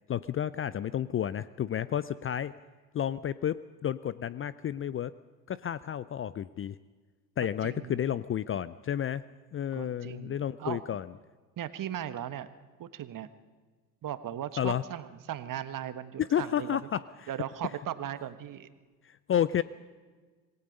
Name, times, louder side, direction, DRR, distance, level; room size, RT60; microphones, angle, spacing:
voice 1, 0.1-2.5 2.9-3.6 3.8-5.1 5.5-6.8 7.4-9.2 9.5-11.1 14.6-14.8 16.3-17.0 19.0-19.6, left 10 dB, 25° left, 17 dB, 0.5 m, -31 dB
voice 2, 7.6-8.0 9.7-10.8 11.6-12.5 12.8-13.3 14.0-16.8 17.3-18.7, right 11 dB, 40° right, 11 dB, 1.5 m, -37 dB
26.5 x 19.5 x 5.4 m, 1.4 s
figure-of-eight pair, 60°, 48 cm